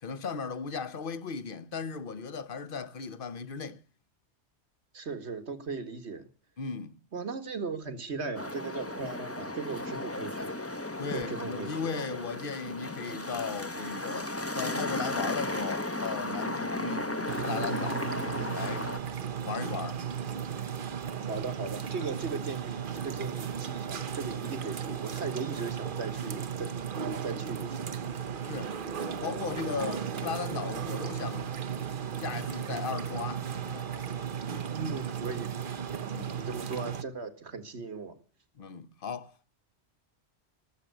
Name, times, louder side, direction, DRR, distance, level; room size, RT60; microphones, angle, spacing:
voice 1, 0.0-3.8 6.6-7.0 11.0-18.1 18.5-19.2 19.4-20.0 28.4-28.8 29.2-31.5 32.2-34.0 34.7-35.0 36.1-36.4 38.6-39.5, left 5 dB, 50° left, 1.1 m, -37 dB
voice 2, 4.9-6.3 7.1-10.6 11.1-11.7 21.3-27.9 34.7-36.0 36.3-38.2, right 4 dB, 70° right, 2.2 m, -38 dB
sound 1, 8.3-19.0, left 1 dB, 15° left, 0.9 m, -35 dB
sound 2, 17.3-37.0, right 7 dB, 50° right, 1.0 m, -35 dB
18.5 x 7.7 x 8.2 m
omnidirectional pair, 1.2 m